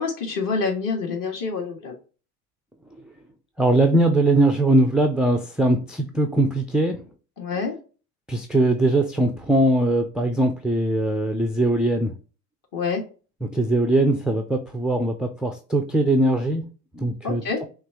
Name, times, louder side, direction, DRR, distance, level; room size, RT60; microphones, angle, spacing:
voice 1, 0.0-1.9 7.4-7.8 12.7-13.0 17.2-17.6, left 4 dB, 40° left, 1 dB, 2.0 m, -26 dB
voice 2, 3.6-7.0 8.3-12.1 13.4-16.6 16.9-17.6, right 1 dB, ahead, 5 dB, 0.4 m, -21 dB
5.8 x 2.6 x 2.9 m, 0.35 s
hypercardioid pair, 80°, 48 cm